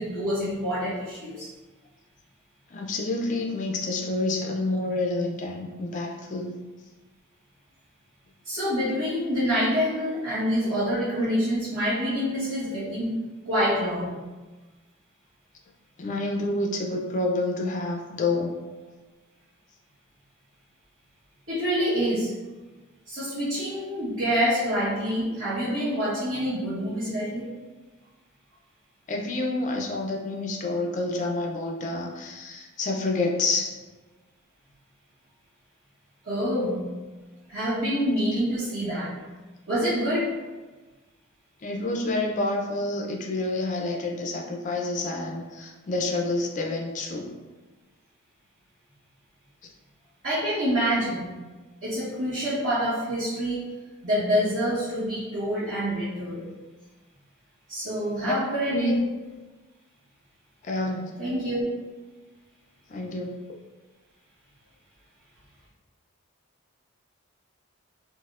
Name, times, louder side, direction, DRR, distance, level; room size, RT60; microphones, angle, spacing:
voice 1, 0.0-1.5 8.4-13.1 13.4-14.1 21.5-22.3 23.1-27.5 36.2-36.8 37.5-39.1 39.7-40.4 50.2-51.3 51.8-53.7 54.0-56.5 57.7-59.0 61.2-61.7, equal, 60° right, -12 dB, 0.9 m, -26 dB
voice 2, 2.7-6.6 16.0-18.6 29.1-33.8 41.6-47.4 58.2-58.3 58.7-59.0 60.6-61.1 62.9-63.5, left 2 dB, 35° left, 0 dB, 0.3 m, -28 dB
4.1 x 2.0 x 2.3 m, 1.3 s
head